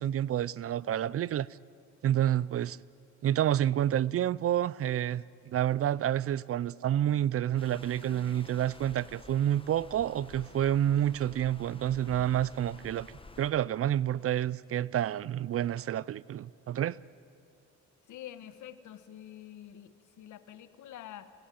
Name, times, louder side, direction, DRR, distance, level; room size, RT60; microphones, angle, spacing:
voice 1, 0.0-1.5 2.0-2.8 3.2-13.1 13.4-17.0, right 11 dB, 50° right, 0.5 m, -29 dB
sound 1, 7.6-13.5, left 3 dB, 15° left, 1.2 m, -51 dB
voice 2, 18.1-21.3, left 11 dB, 75° left, 1.5 m, -47 dB
26.0 x 17.0 x 9.3 m
cardioid pair, 90°, 30 cm